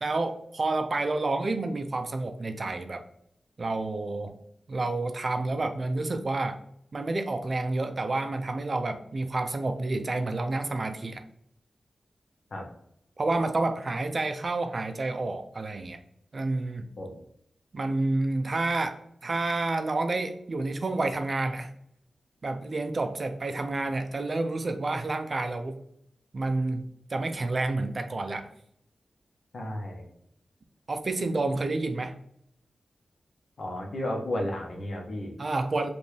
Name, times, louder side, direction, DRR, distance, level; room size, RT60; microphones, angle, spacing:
voice 1, 0.0-3.0 3.6-4.3 4.7-6.6 6.9-11.2 13.2-16.0 16.3-16.9 17.7-19.0 19.2-21.7 22.4-25.8 26.3-28.5 30.9-32.2 35.4-35.9, right 2 dB, 45° right, 7 dB, 0.5 m, -29 dB
voice 2, 29.5-30.1 33.6-35.3, left 1 dB, 65° left, 0 dB, 1.1 m, -33 dB
5.1 x 2.5 x 3.3 m, 0.72 s
wide cardioid pair, 95°, 0 cm